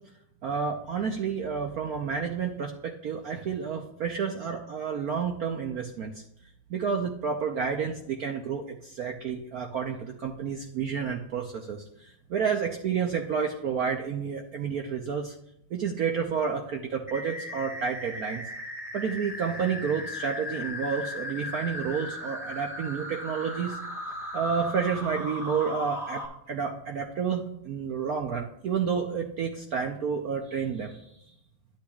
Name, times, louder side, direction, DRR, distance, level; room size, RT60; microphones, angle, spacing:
voice 1, 0.4-6.1 6.7-15.3 15.7-18.4 18.9-23.8 24.3-31.0, right 6 dB, 75° right, 2 dB, 0.8 m, -30 dB
sound 1, 17.1-26.3, left 1 dB, ahead, 1.0 m, -37 dB
11.5 x 8.6 x 2.4 m, 0.78 s
omnidirectional pair, 2.4 m